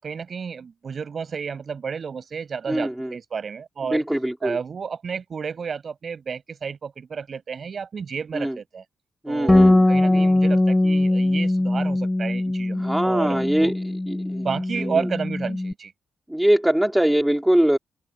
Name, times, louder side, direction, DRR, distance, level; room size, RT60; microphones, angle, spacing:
voice 1, 0.0-4.0 4.4-8.8 9.3-13.7 14.4-15.9, right 6 dB, 45° right, 7.5 m, -31 dB
voice 2, 2.7-3.1 3.9-4.6 8.3-8.6 9.2-10.3 12.8-13.7 14.1-14.4 14.8-14.9 16.3-17.8, right 1 dB, 5° right, 3.0 m, -22 dB
Bass guitar, 9.5-15.7, left 1 dB, 10° left, 7.4 m, -21 dB
cardioid pair, 125°, 0 cm